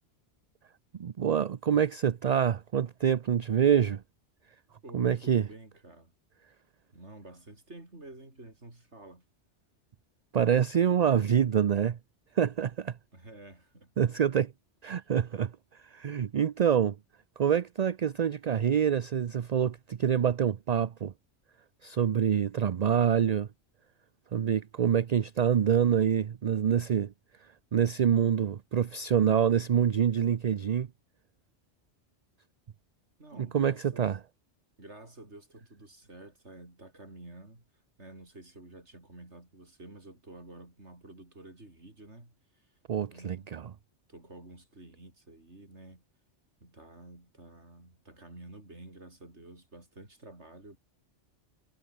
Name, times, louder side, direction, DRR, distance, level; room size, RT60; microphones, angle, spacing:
voice 1, 0.9-4.0 4.9-5.5 10.3-12.0 12.3-13.0 14.0-14.5 14.8-17.0 17.4-21.1 21.8-23.5 24.3-27.1 27.4-30.9 33.4-34.2 42.9-43.7, right 8 dB, 45° right, 0.5 m, -26 dB
voice 2, 4.8-6.1 6.9-9.2 13.1-13.9 14.9-15.1 33.2-34.1 34.8-37.7 38.0-42.7 43.1-43.5 44.1-46.0 46.6-50.8, right 2 dB, 70° right, 5.7 m, -50 dB
omnidirectional pair, 1.2 m